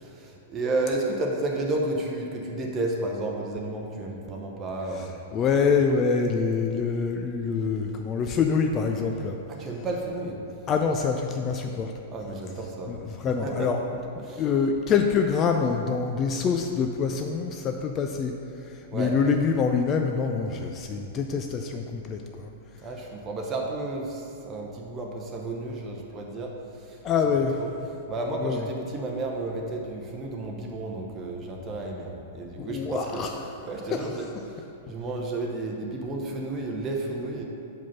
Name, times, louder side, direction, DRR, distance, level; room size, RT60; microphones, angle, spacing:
voice 1, 0.0-5.1 9.6-10.4 12.1-13.0 13.3-13.7 14.2-14.4 18.9-19.1 22.8-27.0 27.6-27.7 28.1-33.3 33.7-34.6 34.9-37.4, right 2 dB, 25° right, -1 dB, 0.8 m, -32 dB
voice 2, 5.0-9.4 10.7-11.9 12.9-13.8 14.2-18.3 18.6-22.5 27.0-27.6 28.4-28.6 32.6-33.3 33.9-34.2, left 5 dB, 30° left, 4 dB, 0.4 m, -26 dB
5.4 x 4.9 x 5.8 m, 2.7 s
figure-of-eight pair, 100°, 0 cm